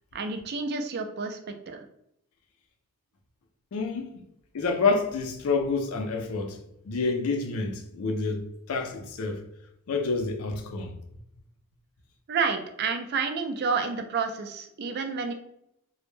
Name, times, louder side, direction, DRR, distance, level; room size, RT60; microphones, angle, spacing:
voice 1, 0.1-1.8 12.3-15.3, right 5 dB, 45° right, 0.3 m, -30 dB
voice 2, 3.7-4.2 4.5-6.6 6.9-9.4 9.9-10.9, left 4 dB, 75° left, 0.4 m, -28 dB
2.1 x 2.0 x 3.1 m
head